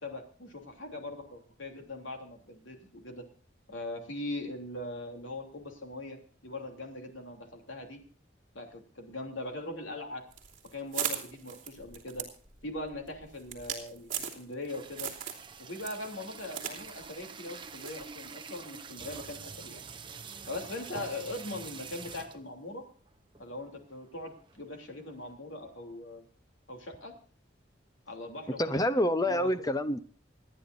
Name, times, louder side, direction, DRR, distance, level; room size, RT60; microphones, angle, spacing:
voice 1, 0.0-3.2 3.7-8.0 8.5-10.2 10.6-12.3 12.6-15.1 15.6-19.8 20.5-22.8 23.4-26.2 26.7-27.1 28.1-28.8 29.2-29.5, left 2 dB, 75° left, 3 dB, 3.1 m, -41 dB
sound 1, 10.3-14.7 15.0-15.5 15.8-16.8 17.0-17.1 17.8-18.0, right 9 dB, 40° right, 2.9 m, -37 dB
sound 2, 14.7-22.5 23.1-23.2 23.3-23.6 24.0-25.3, right 5 dB, 25° right, 0.7 m, -46 dB
voice 2, 28.6-30.0, left 1 dB, 20° left, 12 dB, 0.7 m, -27 dB
28.0 x 10.0 x 2.6 m, 0.42 s
head